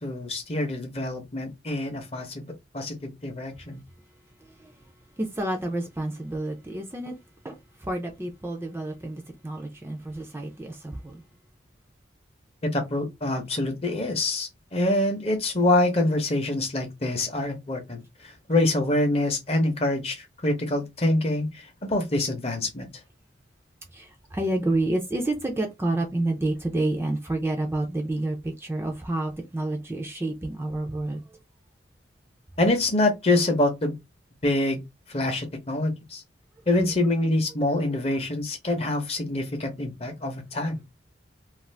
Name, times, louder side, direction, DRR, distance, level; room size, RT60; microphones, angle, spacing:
voice 1, 0.0-3.8 12.7-18.0 18.5-22.9 32.6-33.9 34.4-34.8 35.1-36.2 36.7-40.8, left 2 dB, 35° left, 0.7 m, -25 dB
voice 2, 4.4-4.8 5.2-7.1 7.4-11.2 23.9-31.2, right 2 dB, 15° right, 0.4 m, -29 dB
2.5 x 2.3 x 3.2 m
head